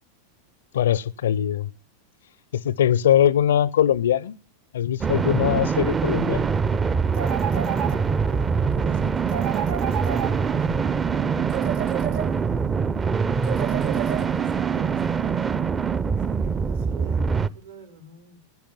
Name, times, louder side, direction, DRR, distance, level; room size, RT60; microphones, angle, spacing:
voice 1, 0.7-1.7 2.5-4.4 4.7-6.5, left 10 dB, 70° left, 0.6 m, -21 dB
sound 1, 5.0-17.5, right 5 dB, 20° right, 0.7 m, -24 dB
sound 2, 7.1-8.4 9.3-10.8 11.5-12.7 13.4-14.6, right 11 dB, 50° right, 1.4 m, -32 dB
voice 2, 8.3-11.5 13.9-15.8 16.2-18.4, right 4 dB, 75° right, 5.2 m, -46 dB
15.5 x 10.5 x 7.1 m
figure-of-eight pair, 90°, 0 cm